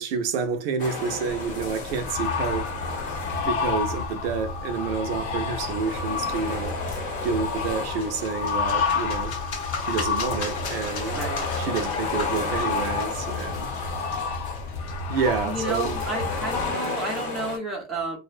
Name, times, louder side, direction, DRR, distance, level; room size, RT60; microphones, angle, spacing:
voice 1, 0.0-2.7 3.4-6.8 7.2-9.4 9.8-11.3 11.6-13.7 15.1-16.0, right 5 dB, 60° right, 0.5 m, -29 dB
sound 1, 0.8-4.1 4.4-17.6, left 3 dB, 40° left, 0.8 m, -35 dB
sound 2, 1.3-16.7, left 4 dB, 75° left, 0.7 m, -30 dB
sound 3, 7.7-15.3, left 5 dB, 90° left, 1.0 m, -38 dB
voice 2, 11.1-11.5 15.1-18.2, right 2 dB, ahead, 0.5 m, -31 dB
2.6 x 2.0 x 2.3 m
supercardioid pair, 160°, 33 cm